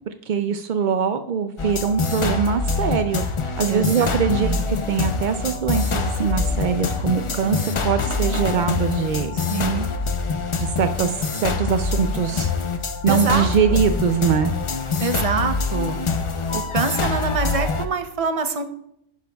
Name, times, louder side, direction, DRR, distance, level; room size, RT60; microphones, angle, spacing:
voice 1, 0.1-4.5 4.9-9.3 10.6-12.5 13.0-14.5, right 7 dB, 75° right, 9 dB, 0.4 m, -22 dB
sound 1, 1.6-17.9, left 4 dB, 45° left, 0.4 m, -25 dB
voice 2, 3.7-4.6 9.5-9.9 13.1-13.8 15.0-16.0 16.5-18.6, right 4 dB, 35° right, 7 dB, 0.6 m, -25 dB
10.5 x 10.0 x 2.3 m, 0.75 s
omnidirectional pair, 1.3 m